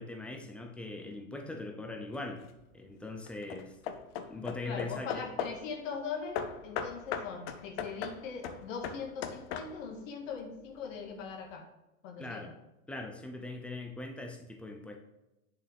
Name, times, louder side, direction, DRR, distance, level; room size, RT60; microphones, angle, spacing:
voice 1, 0.0-2.5 2.7-3.8 4.3-5.4 12.2-12.5 12.9-15.0, left 2 dB, 5° left, 3 dB, 0.4 m, -41 dB
Hammer / Wood, 2.1-2.6 3.3-5.7 6.3-10.0, left 7 dB, 45° left, 0.7 m, -39 dB
voice 2, 4.6-11.7 12.0-12.5, left 5 dB, 60° left, 3 dB, 1.9 m, -41 dB
8.2 x 7.3 x 3.4 m, 0.96 s
hypercardioid pair, 125°, 44 cm